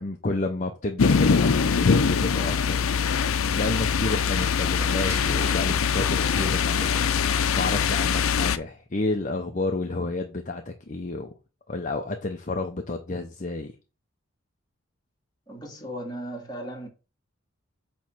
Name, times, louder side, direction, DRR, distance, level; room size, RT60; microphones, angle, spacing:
voice 1, 0.0-3.0 3.5-7.1 7.5-11.3 11.7-13.7, left 2 dB, 35° left, 0.7 m, -30 dB
sound 1, 1.0-8.6, left 6 dB, 85° left, 0.6 m, -23 dB
sound 2, 1.1-7.1, equal, 10° right, 2.6 m, -44 dB
voice 2, 15.5-16.9, right 1 dB, 20° left, 2.0 m, -36 dB
8.7 x 3.1 x 6.0 m
head